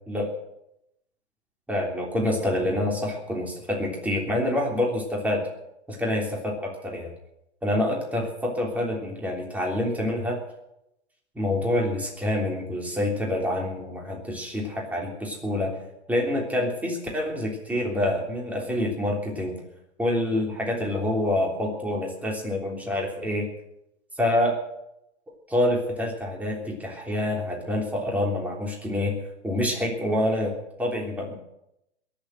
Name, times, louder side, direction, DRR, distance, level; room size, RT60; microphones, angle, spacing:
voice 1, 1.7-5.5 5.9-7.1 7.6-10.4 11.3-15.7 16.1-19.6 20.0-23.4 24.2-24.5 25.5-29.1 29.4-30.5 30.8-31.4, left 1 dB, 5° right, -1 dB, 3.3 m, -27 dB
22.0 x 7.4 x 7.9 m, 0.84 s
hypercardioid pair, 145°, 34 cm